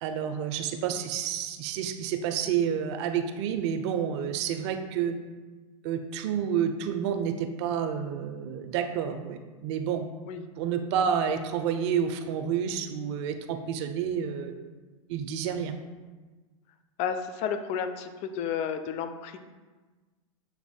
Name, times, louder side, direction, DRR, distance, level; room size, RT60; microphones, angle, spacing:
voice 1, 0.0-5.1 5.8-10.0 10.6-14.5 15.1-15.8, right 8 dB, 50° right, 7 dB, 0.5 m, -29 dB
voice 2, 17.0-19.4, left 7 dB, 35° left, 9 dB, 0.3 m, -32 dB
6.9 x 3.4 x 2.2 m, 1.3 s
hypercardioid pair, 110°, 18 cm